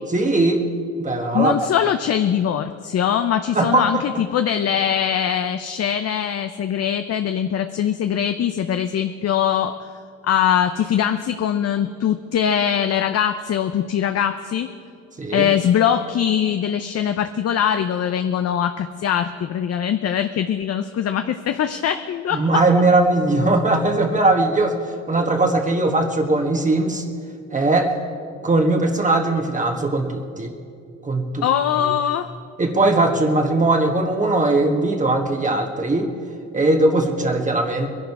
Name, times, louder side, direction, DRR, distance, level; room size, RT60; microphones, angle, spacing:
voice 1, 0.1-0.7 1.0-1.6 3.5-4.0 15.2-15.5 22.3-24.8 25.1-27.0 27.5-27.9 28.4-30.5 31.0-31.5 31.8-31.9 32.6-36.1 36.5-37.9, right 2 dB, 25° right, 3 dB, 1.3 m, -19 dB
voice 2, 1.3-9.7 10.2-14.7 15.3-22.4 31.4-32.3, left 9 dB, 55° left, 9 dB, 0.6 m, -22 dB
21.0 x 11.0 x 4.7 m, 2.4 s
cardioid pair, 90°, 30 cm